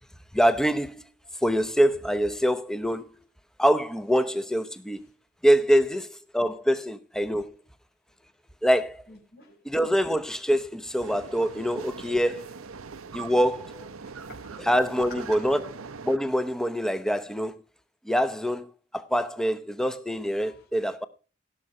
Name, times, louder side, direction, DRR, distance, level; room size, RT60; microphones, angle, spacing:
voice 1, 0.3-1.0 1.4-3.1 3.6-5.0 5.4-6.1 6.3-7.5 8.6-9.0 9.6-12.4 13.1-13.9 14.6-15.6 16.0-17.5 18.1-21.1, equal, 5° left, 0.8 m, -24 dB
voice 2, 9.1-9.6 14.0-14.9 15.3-15.4 20.4-20.7, left 1 dB, 60° left, 4.2 m, -51 dB
sound 1, 11.0-16.2, right 5 dB, 85° right, 0.8 m, -41 dB
17.0 x 6.2 x 5.4 m
head